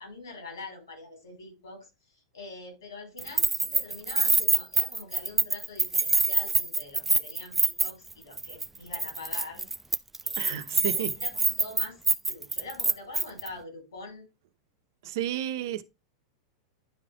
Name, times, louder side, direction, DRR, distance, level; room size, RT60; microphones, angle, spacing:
voice 1, 0.0-1.9 2.1-9.7 10.2-12.0 12.3-14.2, left 3 dB, 70° left, 5.4 m, -44 dB
Keys jangling, 3.2-8.1 8.4-8.7 8.9-13.5, right 3 dB, 10° right, 0.5 m, -25 dB
voice 2, 10.4-11.1 15.0-15.8, right 11 dB, 55° right, 0.9 m, -32 dB
10.5 x 5.0 x 3.5 m
figure-of-eight pair, 90°, 2 cm